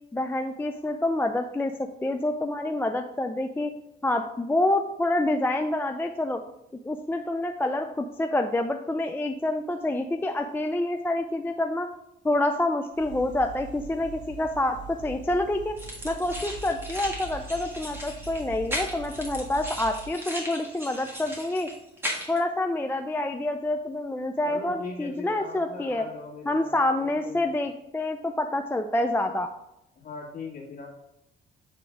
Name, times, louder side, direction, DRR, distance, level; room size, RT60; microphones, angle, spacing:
voice 1, 0.1-3.7 4.0-6.4 6.8-11.9 12.2-15.8 16.0-21.7 22.3-26.0 26.5-29.5, left 1 dB, 10° left, 6 dB, 0.4 m, -27 dB
sound 1, 12.9-20.1, right 2 dB, 35° right, 2.2 m, -42 dB
sound 2, 15.8-22.4, equal, 10° right, 1.8 m, -37 dB
voice 2, 24.4-27.5 30.0-30.9, left 4 dB, 45° left, -2 dB, 2.1 m, -40 dB
7.8 x 3.7 x 3.4 m, 0.86 s
cardioid pair, 90°, 20 cm